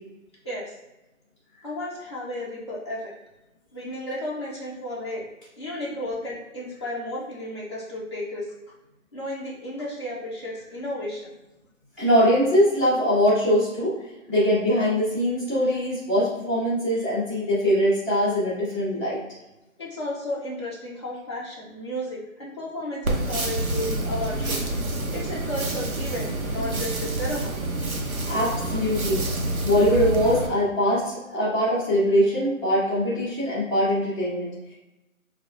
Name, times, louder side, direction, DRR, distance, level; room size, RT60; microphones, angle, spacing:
voice 1, 1.6-3.1 3.7-5.2 5.6-8.5 9.1-11.3 19.8-24.7 25.1-27.6, left 1 dB, 20° left, -8 dB, 0.4 m, -33 dB
voice 2, 12.0-14.0 14.3-19.2 28.3-29.2 29.6-34.7, equal, 10° right, -15 dB, 1.2 m, -22 dB
sound 1, 23.0-30.5, right 1 dB, 90° right, 0.9 m, -28 dB
4.6 x 2.3 x 2.3 m, 0.97 s
hypercardioid pair, 155°, 41 cm